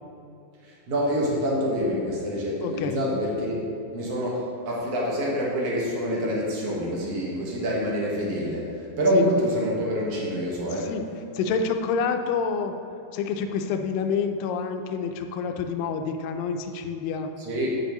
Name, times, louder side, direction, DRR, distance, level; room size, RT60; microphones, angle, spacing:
voice 1, 0.6-10.9 17.4-17.8, equal, 50° right, -4 dB, 2.2 m, -26 dB
voice 2, 2.6-3.1 9.1-9.3 10.7-11.0 11.3-12.8 13.1-17.3, left 5 dB, 85° left, 6 dB, 2.3 m, -28 dB
8.7 x 8.6 x 3.0 m, 2.9 s
omnidirectional pair, 3.9 m